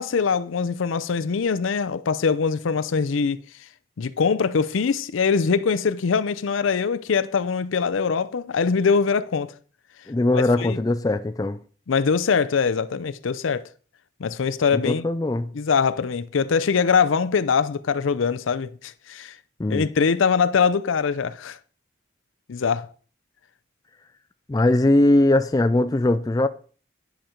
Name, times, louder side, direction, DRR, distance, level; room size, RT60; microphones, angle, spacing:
voice 1, 0.0-3.4 4.0-9.5 10.3-10.8 11.9-13.7 14.2-15.1 15.5-19.4 19.7-21.6 22.5-22.9, left 5 dB, 90° left, 0.5 m, -23 dB
voice 2, 10.1-11.6 14.9-15.5 19.6-19.8 24.5-26.5, left 2 dB, 20° left, 0.3 m, -20 dB
10.5 x 5.2 x 4.4 m
head